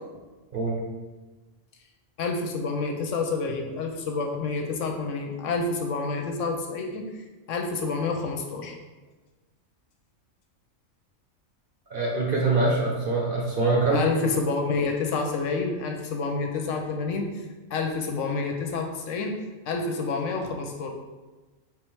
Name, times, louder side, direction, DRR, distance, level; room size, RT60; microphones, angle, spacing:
voice 1, 2.2-7.1 7.5-8.8 13.9-17.3 17.7-19.4 19.7-20.9, left 4 dB, 75° left, 3 dB, 0.9 m, -28 dB
voice 2, 11.9-14.0, right 3 dB, 45° right, -2 dB, 0.9 m, -24 dB
3.6 x 3.2 x 4.6 m, 1.2 s
omnidirectional pair, 1.4 m